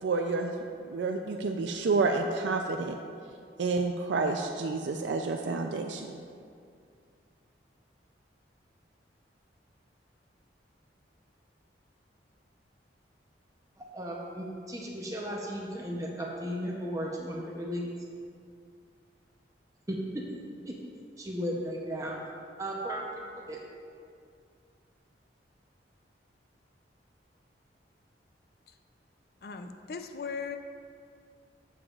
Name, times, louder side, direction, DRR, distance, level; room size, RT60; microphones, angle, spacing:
voice 1, 0.0-0.6 0.9-3.0 3.6-6.2, right 3 dB, 80° right, 4 dB, 0.4 m, -29 dB
voice 2, 13.8-17.9 19.9-20.2 20.6-20.7 21.2-22.2 22.6-23.6, equal, 20° right, -2 dB, 0.7 m, -35 dB
voice 3, 29.4-30.6, left 5 dB, 55° left, 7 dB, 0.4 m, -38 dB
11.5 x 7.0 x 2.4 m, 2.3 s
head